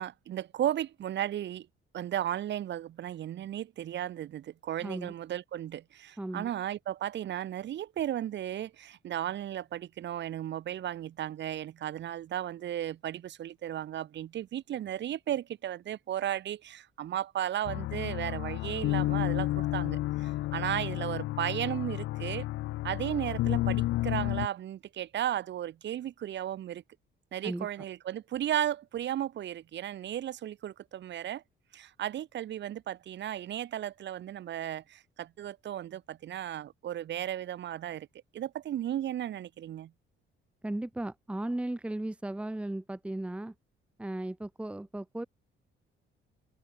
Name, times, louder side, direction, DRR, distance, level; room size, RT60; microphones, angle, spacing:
voice 1, 0.0-1.7 1.9-22.4 22.8-26.8 27.3-31.4 31.7-38.1 38.3-39.9, right 11 dB, 60° right, 2.9 m, -35 dB
voice 2, 4.8-5.1 6.2-6.5 27.4-27.7 40.6-43.5 44.0-45.3, right 1 dB, 5° right, 1.3 m, -36 dB
sound 1, 17.7-24.5, left 16 dB, 70° left, 0.4 m, -31 dB
cardioid pair, 180°, 21 cm